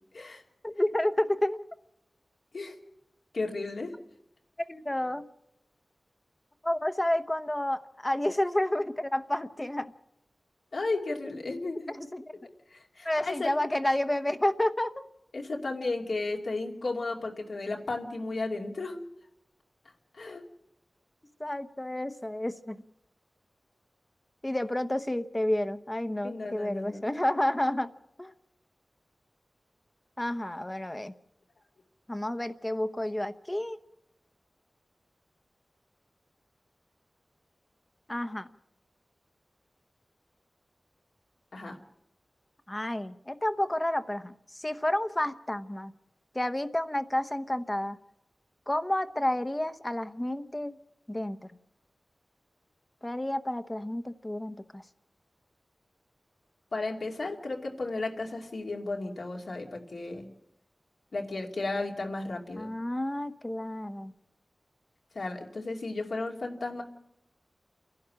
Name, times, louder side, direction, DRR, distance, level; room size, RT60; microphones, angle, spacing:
voice 1, 0.6-1.6 4.7-5.3 6.6-9.9 11.9-12.2 13.0-15.0 21.4-22.8 24.4-27.9 28.2-28.3 30.2-31.1 32.1-33.8 38.1-38.5 42.7-45.9 46.3-48.0 48.7-50.8 51.1-51.4 53.0-54.8 62.6-64.1, left 1 dB, 20° left, 10 dB, 0.9 m, -30 dB
voice 2, 3.3-3.9 10.7-12.0 12.3-13.5 15.3-19.0 20.1-20.4 26.2-27.0 41.5-41.8 56.7-60.3 61.1-62.7 65.1-66.8, left 3 dB, 85° left, 0 dB, 2.6 m, -34 dB
30.0 x 11.5 x 8.7 m, 0.83 s
wide cardioid pair, 90°, 0 cm